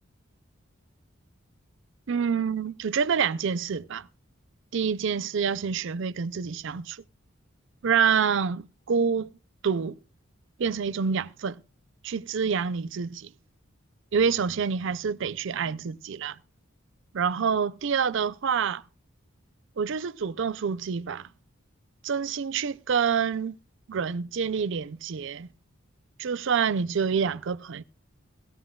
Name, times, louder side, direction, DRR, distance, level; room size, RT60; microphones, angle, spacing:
voice 1, 2.1-4.1 4.7-7.0 7.8-9.3 9.6-10.0 10.6-11.6 12.0-13.3 14.1-16.4 17.1-18.8 19.8-21.3 22.0-23.6 23.9-25.5 26.2-27.8, right 6 dB, 65° right, 0.5 m, -27 dB
17.5 x 15.0 x 2.3 m
head